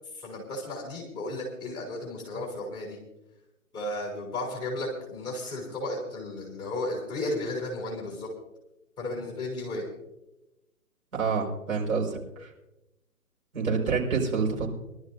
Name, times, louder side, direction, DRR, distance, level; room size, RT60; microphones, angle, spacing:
voice 1, 0.1-3.0 3.7-8.3 9.0-9.8, left 2 dB, 10° left, -1 dB, 3.4 m, -34 dB
voice 2, 11.1-12.5 13.5-14.7, right 5 dB, 60° right, -2 dB, 5.3 m, -27 dB
23.5 x 12.5 x 2.7 m, 0.94 s
figure-of-eight pair, 135°, 45 cm